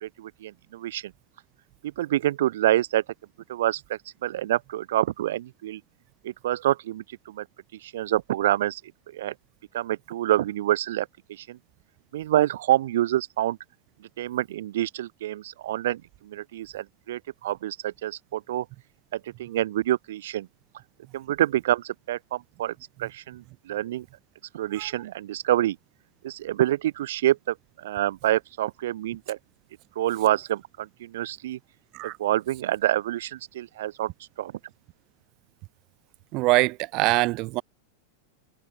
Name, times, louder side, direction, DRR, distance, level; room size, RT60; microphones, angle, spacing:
voice 1, 0.0-1.1 2.0-3.0 3.5-5.8 6.2-7.4 7.8-8.8 9.1-9.3 9.7-11.6 12.1-13.6 14.2-18.6 19.1-20.5 21.1-22.7 23.0-24.0 24.5-25.8 26.2-29.4 30.0-31.6 32.2-34.1 34.4-34.5, right 13 dB, 55° right, 1.2 m, -27 dB
voice 2, 36.3-37.6, right 23 dB, 40° right, 0.6 m, -23 dB
figure-of-eight pair, 90°, 0 cm